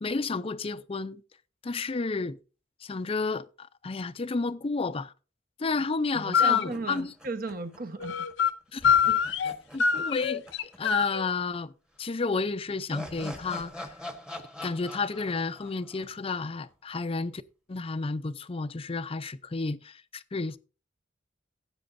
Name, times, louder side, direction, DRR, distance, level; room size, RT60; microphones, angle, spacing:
voice 1, 0.0-1.2 1.6-2.4 2.8-5.1 5.6-7.1 8.7-10.4 10.8-11.7 12.0-13.9 14.6-17.4 17.7-20.6, left 4 dB, 30° left, 0.5 m, -31 dB
voice 2, 6.1-8.3 9.8-9.9, right 3 dB, 50° right, 1.2 m, -36 dB
sound 1, 6.3-6.7 8.0-8.5 8.8-9.5 9.8-11.2, left 7 dB, 75° left, 0.6 m, -24 dB
sound 2, 6.7-8.0 8.3-8.4 8.8-11.0 11.3-11.4 12.4-16.7, left 1 dB, 5° right, 1.1 m, -44 dB
15.5 x 7.9 x 2.6 m
head